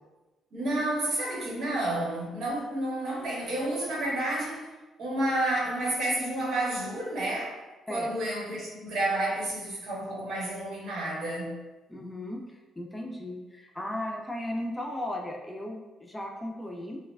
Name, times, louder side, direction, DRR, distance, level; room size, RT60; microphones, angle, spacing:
voice 1, 0.5-4.7 5.0-7.6 7.9-11.6, right 1 dB, 70° right, 1.4 m, -30 dB
voice 2, 11.9-17.0, left 1 dB, 10° left, 0.6 m, -36 dB
5.8 x 2.4 x 2.3 m
cardioid pair, 90°, 0 cm